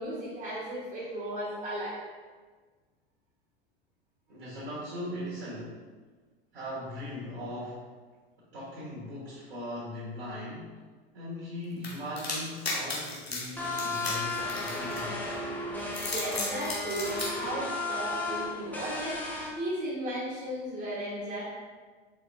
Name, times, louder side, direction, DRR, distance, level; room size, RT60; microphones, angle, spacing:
voice 1, 0.0-2.0 16.1-19.2 19.5-21.4, right 1 dB, 20° right, -9 dB, 1.1 m, -35 dB
voice 2, 4.3-5.8 6.5-7.9 8.5-10.8 11.1-15.2, left 1 dB, 65° right, -8 dB, 1.2 m, -39 dB
sound 1, 11.8-15.3 15.8-17.3, left 3 dB, 85° left, 0.9 m, -35 dB
sound 2, 13.6-19.5, left 2 dB, 5° left, 0.5 m, -34 dB
4.3 x 3.4 x 2.5 m, 1.4 s
figure-of-eight pair, 80°, 30 cm